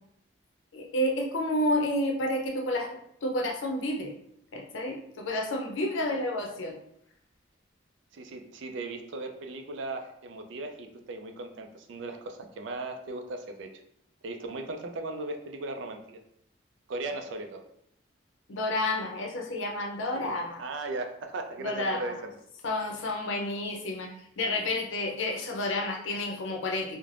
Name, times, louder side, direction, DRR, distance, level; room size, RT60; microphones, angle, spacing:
voice 1, 0.7-4.1 4.5-6.7 18.5-20.6 21.6-22.1 22.6-27.0, left 1 dB, 80° left, 1 dB, 0.5 m, -30 dB
voice 2, 8.1-13.7 14.2-16.2 16.9-17.6 20.1-22.4, right 2 dB, 75° right, 5 dB, 0.4 m, -37 dB
2.4 x 2.0 x 3.2 m, 0.75 s
head